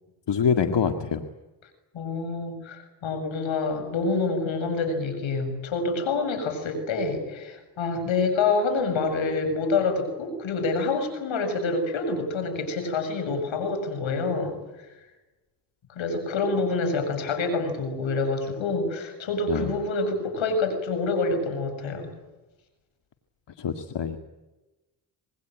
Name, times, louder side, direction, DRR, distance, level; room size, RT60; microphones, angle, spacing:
voice 1, 0.3-1.2 19.5-19.8 23.6-24.2, left 7 dB, 65° left, 6 dB, 2.0 m, -25 dB
voice 2, 1.9-14.6 16.0-22.1, left 3 dB, 90° left, 8 dB, 7.2 m, -27 dB
26.0 x 21.5 x 9.2 m, 1.1 s
cardioid pair, 60°, 45 cm